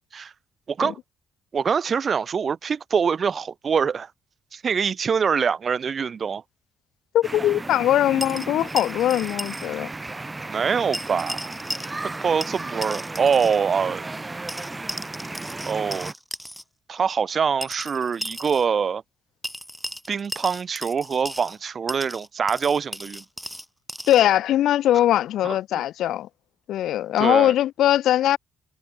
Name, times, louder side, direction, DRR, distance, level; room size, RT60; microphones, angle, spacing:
voice 1, 0.7-1.0 1.5-4.1 4.5-6.4 10.5-11.6 12.0-14.0 15.7-16.1 16.9-19.0 20.1-23.2 25.4-25.8 27.2-27.5, right 6 dB, 45° right, 1.0 m, -24 dB
voice 2, 7.1-9.9 24.1-26.3 26.7-28.4, left 12 dB, 80° left, 0.7 m, -21 dB
sound 1, 7.2-16.1, right 2 dB, 20° right, 1.8 m, -34 dB
sound 2, 8.2-9.7 9.9-10.0 10.9-12.2 12.4-13.6 14.5-16.6 17.6-18.6 19.4-21.6 21.9-24.2, equal, ahead, 3.3 m, -35 dB
cardioid pair, 90°, 0 cm